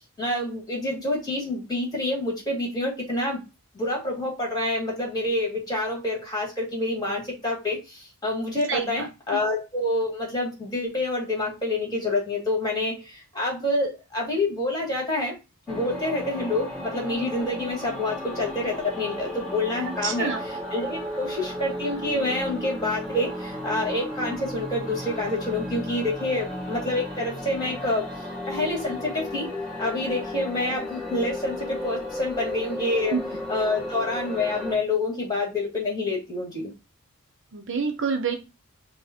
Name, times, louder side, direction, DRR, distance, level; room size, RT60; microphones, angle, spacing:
voice 1, 0.2-3.4 3.7-15.4 15.7-20.3 20.7-28.1 28.5-29.5 29.8-33.2 33.5-36.7, left 2 dB, 15° left, -1 dB, 1.8 m, -27 dB
voice 2, 8.7-9.4 19.9-20.4 33.1-33.2 37.5-38.4, right 5 dB, 55° right, 6 dB, 0.7 m, -28 dB
sound 1, 15.7-34.7, left 1 dB, 5° right, 2.4 m, -34 dB
5.2 x 2.1 x 4.3 m, 0.26 s
head